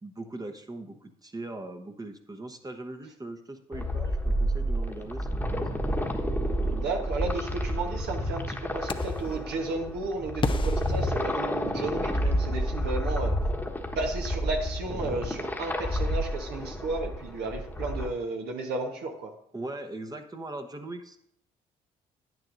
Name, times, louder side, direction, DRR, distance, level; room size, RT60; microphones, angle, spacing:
voice 1, 0.0-5.8 19.5-21.2, right 2 dB, 20° right, 5 dB, 1.0 m, -40 dB
sound 1, 3.7-18.1, equal, 10° left, 1.3 m, -30 dB
voice 2, 6.6-13.3 13.9-19.3, right 3 dB, 70° right, 2 dB, 1.2 m, -33 dB
sound 2, 8.9-9.4 10.4-11.9, left 5 dB, 30° left, 0.6 m, -34 dB
9.9 x 9.2 x 2.6 m, 0.69 s
hypercardioid pair, 60°, 18 cm